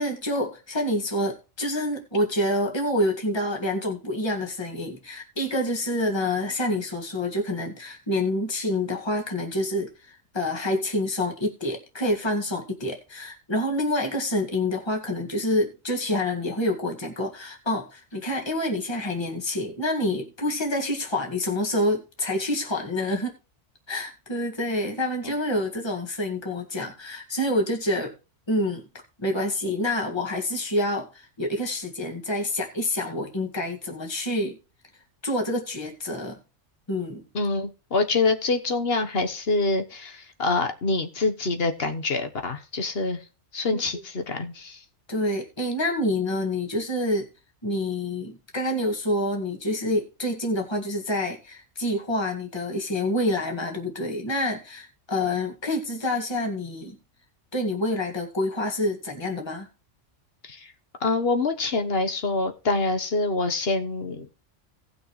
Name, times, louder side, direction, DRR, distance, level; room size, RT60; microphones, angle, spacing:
voice 1, 0.0-23.4 23.9-28.1 28.5-28.8 29.2-34.6 35.2-36.4 36.9-37.2 43.7-43.8 45.1-47.3 47.6-57.0 57.5-59.7, left 1 dB, 20° left, 1 dB, 2.0 m, -27 dB
voice 2, 37.3-43.2 43.5-44.8 60.4-60.7 61.0-64.3, left 3 dB, 55° left, 7 dB, 1.4 m, -26 dB
18.0 x 6.0 x 3.2 m, 0.31 s
omnidirectional pair, 1.3 m